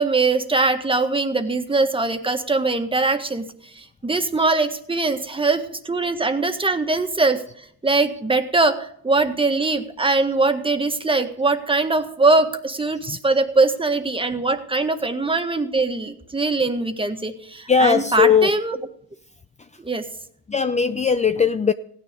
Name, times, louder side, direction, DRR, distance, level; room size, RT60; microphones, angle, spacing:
voice 1, 0.0-3.5 3.8-7.4 7.8-18.8 19.8-20.0, right 3 dB, 15° right, 1.6 m, -21 dB
voice 2, 17.7-18.6 20.5-21.7, left 6 dB, 25° left, 0.5 m, -18 dB
16.0 x 9.9 x 5.2 m
cardioid pair, 90°, 30 cm